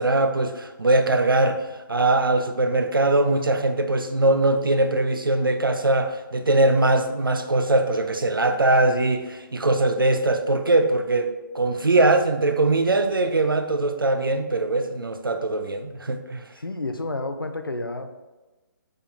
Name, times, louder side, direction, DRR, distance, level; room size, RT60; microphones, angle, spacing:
voice 1, 0.0-16.4, right 2 dB, 80° right, 7 dB, 0.5 m, -21 dB
voice 2, 16.6-18.2, left 2 dB, 85° left, 7 dB, 0.5 m, -30 dB
5.1 x 3.7 x 2.7 m, 1.1 s
figure-of-eight pair, 140°, 11 cm